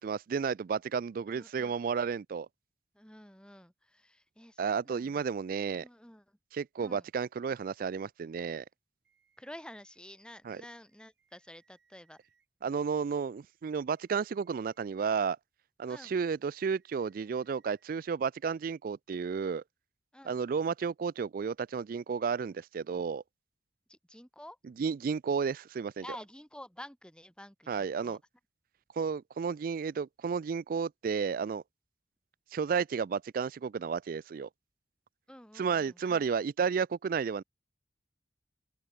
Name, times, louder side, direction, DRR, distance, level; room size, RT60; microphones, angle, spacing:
voice 1, 0.0-2.5 4.6-5.8 6.5-8.6 10.5-10.6 12.6-15.4 15.8-19.6 20.3-23.2 24.8-26.0 27.7-28.2 29.0-31.6 32.5-34.5 35.6-37.4, right 6 dB, 50° right, 0.3 m, -32 dB
voice 2, 1.3-1.8 2.9-5.2 5.7-6.4 6.8-7.1 9.4-12.2 15.9-16.2 20.1-20.4 23.9-24.6 26.0-28.2 35.3-36.2, left 1 dB, 5° left, 3.1 m, -50 dB
sound 1, 9.0-10.0 10.8-12.5 13.8-15.1 16.4-18.0, right 6 dB, 70° right, 5.3 m, -74 dB
open air
head